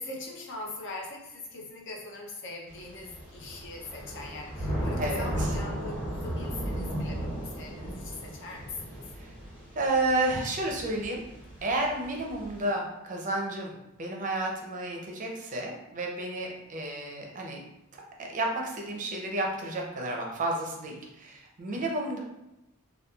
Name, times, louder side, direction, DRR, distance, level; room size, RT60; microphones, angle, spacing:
voice 1, 0.0-9.0 21.7-21.8, left 2 dB, 60° left, 0 dB, 0.5 m, -41 dB
Thunder / Rain, 2.7-12.6, equal, 15° left, 1.5 m, -36 dB
voice 2, 5.0-5.6 9.2-9.3 9.7-11.2 11.6-13.7 14.0-17.6 17.9-22.2, right 2 dB, 35° right, 0 dB, 0.5 m, -31 dB
3.0 x 2.3 x 2.3 m, 0.91 s
head